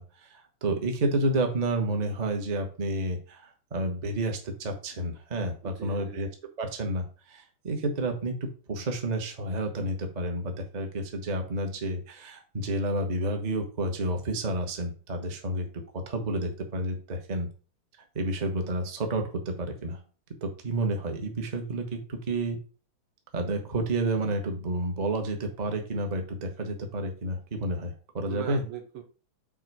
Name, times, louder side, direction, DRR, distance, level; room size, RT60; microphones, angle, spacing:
voice 1, 0.0-6.3 6.6-15.7 15.9-17.5 18.1-20.0 20.4-22.6 23.3-28.6, right 1 dB, 30° right, 4 dB, 0.8 m, -30 dB
voice 2, 5.6-6.2 28.3-29.0, right 8 dB, 80° right, 5 dB, 2.0 m, -40 dB
6.1 x 4.2 x 4.7 m, 0.37 s
omnidirectional pair, 2.4 m